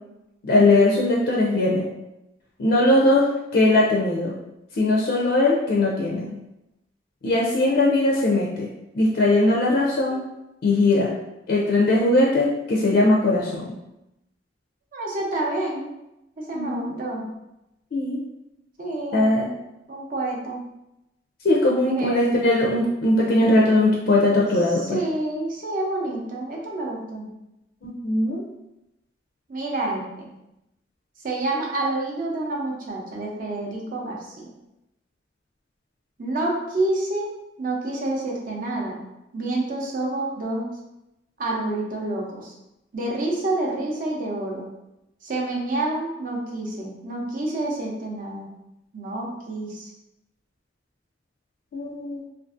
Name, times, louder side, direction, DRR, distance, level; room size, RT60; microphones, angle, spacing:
voice 1, 0.4-1.8 2.6-3.3 3.5-4.3 4.8-6.2 7.2-8.7 8.9-10.2 10.6-11.1 11.5-13.7 16.5-17.0 17.9-18.2 19.1-19.5 21.4-25.0 27.8-28.4 51.7-52.2, left 2 dB, 65° left, -3 dB, 0.4 m, -20 dB
voice 2, 14.9-15.9 16.4-17.3 18.8-19.3 19.9-20.6 21.8-22.3 24.8-27.3 29.5-30.3 31.2-34.5 36.2-37.3 37.6-39.0 39.3-40.7 41.4-42.5 42.9-44.7 45.2-48.5 48.9-49.9, right 2 dB, 50° right, -2 dB, 0.6 m, -28 dB
2.5 x 2.4 x 2.4 m, 0.91 s
head